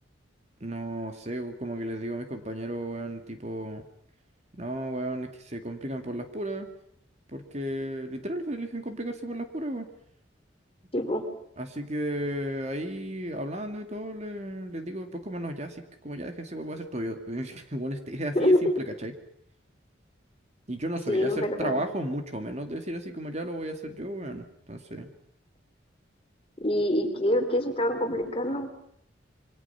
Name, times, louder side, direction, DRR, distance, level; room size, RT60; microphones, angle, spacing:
voice 1, 0.6-3.9 4.6-6.7 7.3-9.9 11.6-19.1 20.7-25.1, right 1 dB, 35° right, 6 dB, 2.4 m, -34 dB
voice 2, 10.9-11.2 18.3-18.6 21.1-21.8 26.6-28.7, left 1 dB, 30° left, 6 dB, 3.2 m, -25 dB
27.5 x 24.0 x 5.8 m, 0.69 s
head